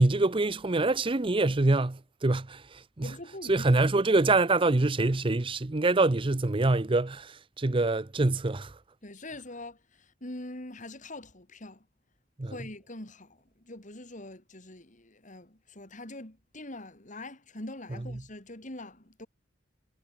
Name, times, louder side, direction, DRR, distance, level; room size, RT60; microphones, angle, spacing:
voice 1, 0.0-3.1 3.5-8.7 12.4-12.5, right 2 dB, 30° right, 0.7 m, -25 dB
voice 2, 3.0-3.7 9.0-11.9 12.4-19.3, left 1 dB, 45° left, 4.2 m, -43 dB
head